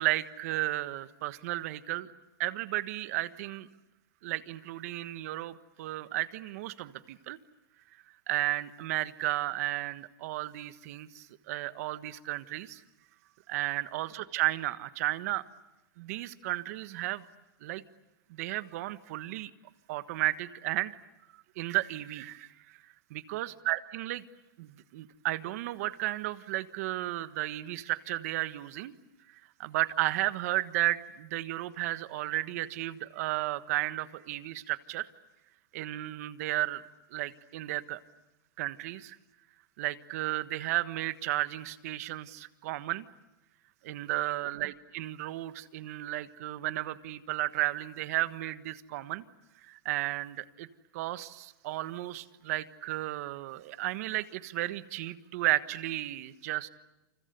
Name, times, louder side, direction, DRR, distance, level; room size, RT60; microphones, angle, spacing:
voice 1, 0.0-2.1 2.4-3.7 4.2-7.4 8.3-12.8 13.5-15.4 16.0-17.2 17.6-17.8 18.3-19.5 19.9-21.0 21.6-22.8 23.1-24.2 24.6-28.9 29.6-35.1 35.7-36.8 37.1-38.0 38.6-39.2 39.8-43.0 43.8-49.2 49.7-50.7 50.9-56.7, right 16 dB, 45° right, 12 dB, 1.4 m, -33 dB
29.5 x 29.0 x 6.9 m, 0.97 s
supercardioid pair, 165°, 11 cm